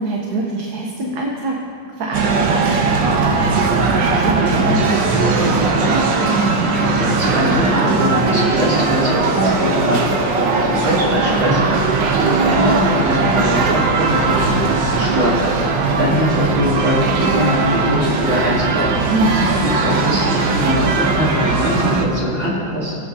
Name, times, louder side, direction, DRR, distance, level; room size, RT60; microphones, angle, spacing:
voice 1, 0.0-1.5 1.8-6.1 19.1-19.6, right 2 dB, 65° right, 0 dB, 1.4 m, -24 dB
sound 1, 2.1-22.1, right 4 dB, 85° right, 1.6 m, -18 dB
voice 2, 6.7-15.7 16.0-19.0 19.8-23.0, equal, 40° right, -8 dB, 3.3 m, -21 dB
22.0 x 8.5 x 2.7 m, 2.5 s
omnidirectional pair, 2.0 m